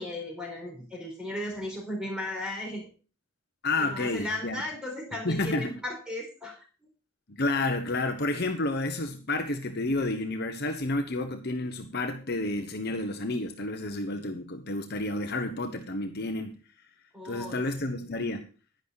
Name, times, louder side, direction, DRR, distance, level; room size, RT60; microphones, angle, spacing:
voice 1, 0.0-2.9 3.8-6.6 17.1-17.6, left 1 dB, 5° right, -1 dB, 4.5 m, -36 dB
voice 2, 3.6-4.6 5.2-5.7 7.3-16.6 17.2-18.5, left 2 dB, 50° left, 6 dB, 1.1 m, -30 dB
11.0 x 10.5 x 4.1 m, 0.36 s
head